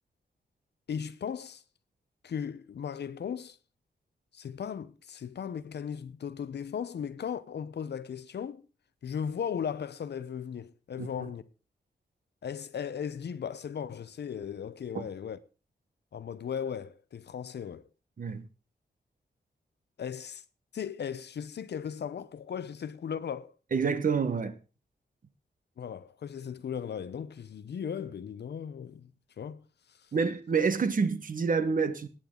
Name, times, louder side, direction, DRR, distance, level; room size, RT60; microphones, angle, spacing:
voice 1, 0.9-1.6 2.2-3.6 4.3-8.6 9.0-11.4 12.4-15.4 16.1-17.9 20.0-20.4 20.7-23.5 25.8-29.1 29.4-29.6, left 7 dB, 70° left, 0.8 m, -37 dB
voice 2, 11.0-11.3 14.9-15.1 18.2-18.5 23.7-24.5 30.1-32.1, right 5 dB, 50° right, 1.2 m, -28 dB
18.5 x 9.0 x 3.9 m
wide cardioid pair, 165°, 18 cm